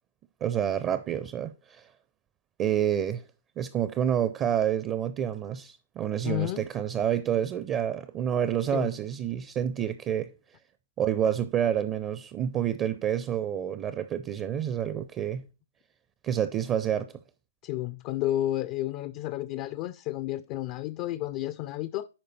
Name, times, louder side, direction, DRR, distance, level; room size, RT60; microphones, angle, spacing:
voice 1, 0.4-1.9 2.6-3.2 3.6-10.3 11.0-15.4 16.2-17.1, right 9 dB, 25° right, 0.5 m, -28 dB
voice 2, 6.2-6.7 8.7-8.9 17.6-22.1, left 14 dB, 40° left, 0.4 m, -31 dB
8.7 x 5.2 x 4.2 m
figure-of-eight pair, 115°, 0 cm